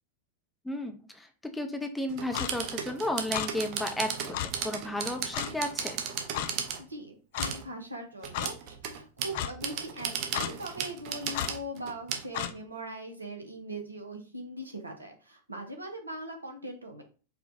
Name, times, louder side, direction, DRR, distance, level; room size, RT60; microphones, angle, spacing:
voice 1, 0.6-6.0, left 1 dB, 5° left, 4 dB, 0.6 m, -33 dB
sound 1, 2.1-6.8 7.4-7.6 8.2-12.2, right 7 dB, 40° right, 0.7 m, -35 dB
Clock, 2.3-2.5 3.3-3.5 4.3-4.5 5.3-5.5 6.3-6.5 7.3-7.5 8.3-8.5 9.3-9.5 10.3-10.5 11.3-11.5 12.3-12.5, left 10 dB, 50° left, 0.3 m, -32 dB
voice 2, 6.8-17.0, right 1 dB, 80° right, 4 dB, 0.8 m, -41 dB
4.6 x 2.3 x 2.7 m, 0.36 s
figure-of-eight pair, 90°, 0 cm